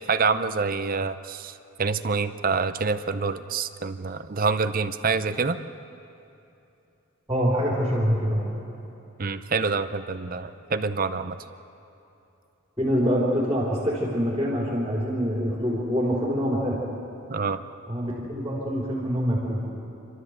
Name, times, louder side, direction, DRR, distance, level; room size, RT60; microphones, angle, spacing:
voice 1, 0.1-5.6 9.2-11.4 17.3-17.6, right 4 dB, 40° right, 10 dB, 0.6 m, -26 dB
voice 2, 7.3-8.5 12.8-16.8 17.9-19.6, equal, 15° right, -6 dB, 3.7 m, -25 dB
28.5 x 13.0 x 8.0 m, 2.8 s
head